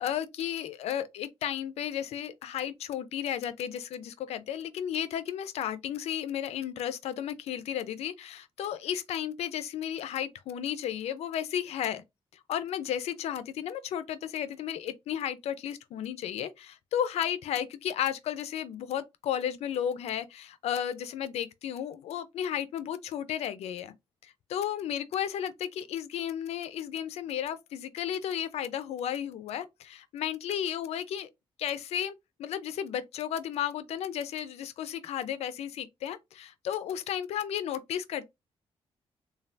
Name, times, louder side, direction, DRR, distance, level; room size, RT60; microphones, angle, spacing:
voice 1, 0.0-12.0 12.5-23.9 24.2-31.3 31.6-32.1 32.4-38.3, left 10 dB, 90° left, 0.4 m, -33 dB
3.2 x 2.2 x 2.6 m
cardioid pair, 125°, 10 cm